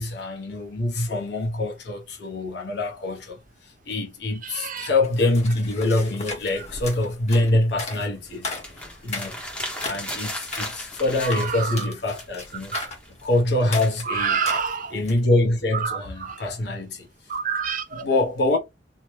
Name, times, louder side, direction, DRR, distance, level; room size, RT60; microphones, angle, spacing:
voice 1, 0.0-3.4 3.9-8.5 8.9-9.3 9.8-12.8 13.2-14.4 14.9-17.1 17.9-18.6, left 2 dB, 65° left, 0.8 m, -24 dB
voice 2, 4.4-4.9 11.3-11.9 12.7-12.9 14.1-15.0 15.7-16.4 17.3-18.1, right 6 dB, 45° right, 0.5 m, -28 dB
sound 1, 5.0-15.3, left 3 dB, 35° left, 1.0 m, -37 dB
Folding paper up and throwing it away, 8.3-11.9 12.1-14.4, equal, 5° left, 0.8 m, -36 dB
2.7 x 2.1 x 3.1 m
head